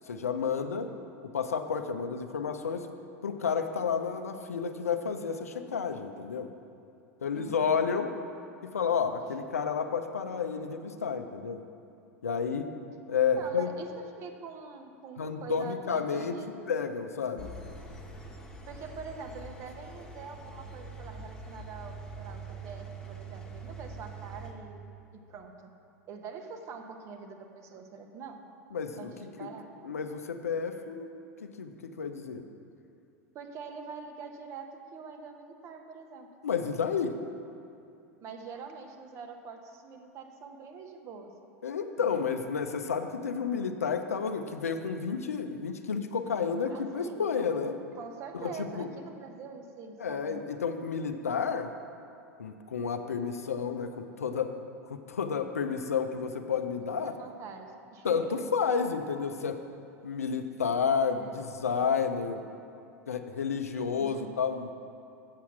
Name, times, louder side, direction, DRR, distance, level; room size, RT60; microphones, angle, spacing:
voice 1, 0.1-0.9 1.2-2.9 3.2-6.5 7.2-8.1 8.6-11.6 12.2-12.7 13.1-13.7 15.2-16.4 16.7-17.5 28.7-29.1 29.4-29.5 29.8-31.1 31.4-31.7 32.0-32.4 36.4-37.2 41.6-47.8 48.3-48.9 50.0-51.7 52.4-54.5 54.9-57.1 58.0-59.6 60.0-62.4 63.1-64.7, left 6 dB, 75° left, 7 dB, 0.5 m, -31 dB
voice 2, 7.3-7.8 9.3-9.4 13.3-13.9 14.2-16.6 18.7-24.8 25.1-25.7 26.1-28.4 29.0-29.7 33.3-36.3 38.2-41.3 42.0-42.2 46.7-47.2 48.0-50.5 57.0-58.4 61.1-61.4 64.0-64.3, right 5 dB, 35° right, 5 dB, 0.9 m, -44 dB
Engine, 17.4-24.5, right 3 dB, 10° left, 1.2 m, -44 dB
7.5 x 7.0 x 5.9 m, 2.5 s
figure-of-eight pair, 85°, 8 cm